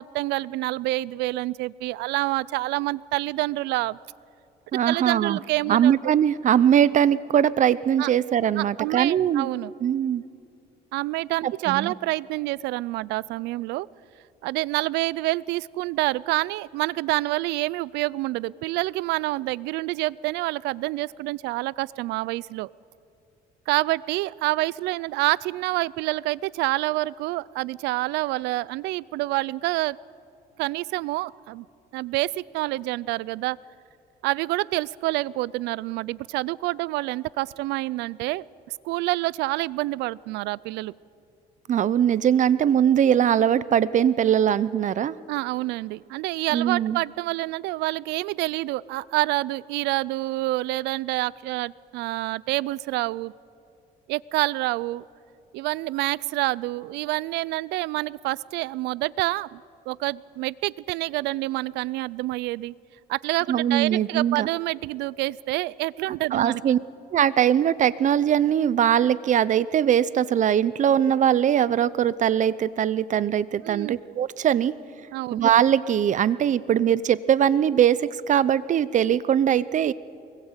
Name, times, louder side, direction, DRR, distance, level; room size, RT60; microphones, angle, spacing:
voice 1, 0.0-4.0 4.8-6.0 8.0-8.1 8.6-9.7 10.9-13.9 14.4-22.7 23.7-30.0 30.6-31.7 31.9-33.6 34.2-40.9 45.3-53.3 54.1-55.0 55.5-59.6 59.9-62.7 63.1-66.6 73.6-74.0 75.1-75.4, right 19 dB, 90° right, 23 dB, 0.5 m, -27 dB
voice 2, 4.7-5.4 5.7-9.5 9.8-10.2 11.4-11.9 41.7-45.2 46.5-47.0 63.5-64.5 66.3-66.8 67.1-74.7 75.3-79.9, right 9 dB, 45° right, 18 dB, 0.7 m, -21 dB
23.5 x 20.5 x 8.2 m, 2.5 s
cardioid pair, 110°, 17 cm